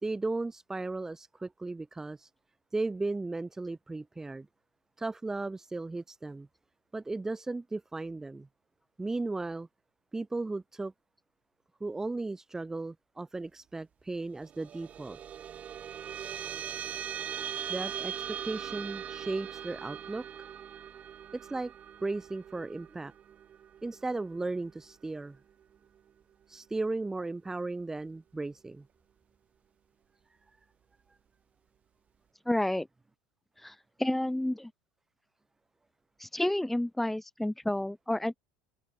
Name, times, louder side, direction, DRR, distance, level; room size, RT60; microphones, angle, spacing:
voice 1, 0.0-2.3 2.7-4.5 5.0-6.5 6.9-8.5 9.0-9.7 10.1-10.9 11.8-15.2 17.7-20.5 21.3-21.7 22.0-23.1 23.8-25.4 26.5-28.9, right 3 dB, 10° right, 2.3 m, -36 dB
sound 1, 14.4-25.1, right 9 dB, 35° right, 7.1 m, -41 dB
voice 2, 32.5-32.9 33.6-34.7 36.2-38.4, left 1 dB, 5° left, 5.7 m, -30 dB
hypercardioid pair, 75°, 4 cm